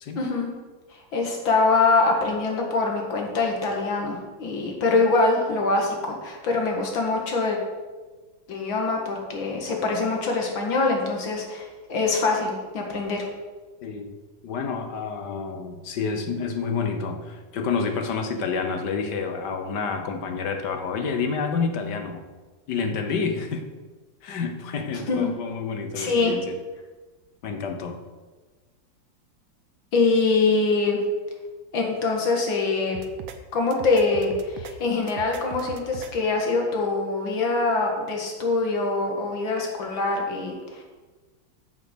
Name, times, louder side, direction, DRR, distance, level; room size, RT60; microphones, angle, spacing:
voice 1, 0.2-0.5 1.1-7.6 8.5-13.3 25.1-25.3 26.0-26.3 29.9-31.0 31.7-33.0 33.5-40.8, left 3 dB, 80° left, 1 dB, 2.5 m, -24 dB
voice 2, 13.8-14.1 14.4-22.2 22.7-23.6 24.2-26.6 27.4-28.0, left 5 dB, 65° left, 6 dB, 1.5 m, -29 dB
sound 1, 32.9-33.4 33.7-34.7 35.1-36.1, right 7 dB, 85° right, 1.6 m, -39 dB
7.9 x 7.4 x 6.2 m, 1.3 s
omnidirectional pair, 2.1 m